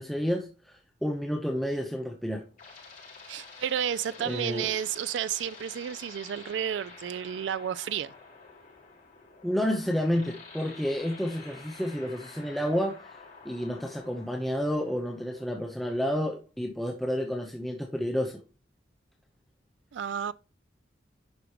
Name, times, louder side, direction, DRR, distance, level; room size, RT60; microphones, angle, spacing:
voice 1, 0.0-2.4 4.2-4.7 9.4-13.0 13.4-18.4, equal, ahead, 0.9 m, -30 dB
sound 1, 2.1-15.7, left 4 dB, 45° left, 4.7 m, -49 dB
voice 2, 3.3-8.1 19.9-20.3, right 9 dB, 80° right, 0.3 m, -31 dB
11.0 x 5.1 x 2.9 m
head